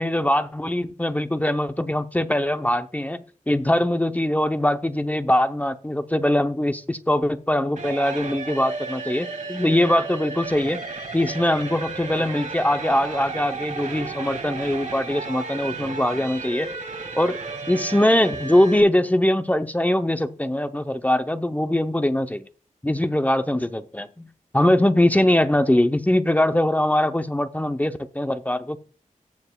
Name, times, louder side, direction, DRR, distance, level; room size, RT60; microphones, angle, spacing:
voice 1, 0.0-10.8 11.1-16.7 17.2-17.4 17.7-22.4 22.8-24.3 24.5-28.8, left 1 dB, 10° left, 0.6 m, -22 dB
sound 1, 7.7-18.8, right 4 dB, 75° right, 2.3 m, -33 dB
17.5 x 7.1 x 2.3 m
wide cardioid pair, 75°, 13 cm